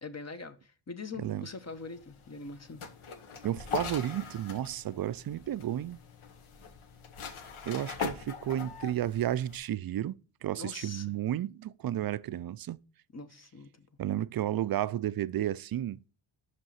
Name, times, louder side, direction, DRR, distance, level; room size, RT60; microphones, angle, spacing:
voice 1, 0.0-2.8 10.6-11.1 13.1-13.9, left 4 dB, 30° left, 0.9 m, -43 dB
voice 2, 1.2-1.5 3.4-6.0 7.6-10.1 10.4-12.8 14.0-16.0, right 12 dB, 50° right, 0.4 m, -32 dB
sound 1, 1.3-9.6, left 6 dB, 75° left, 1.2 m, -41 dB
6.0 x 5.4 x 5.6 m
cardioid pair, 75°, 50 cm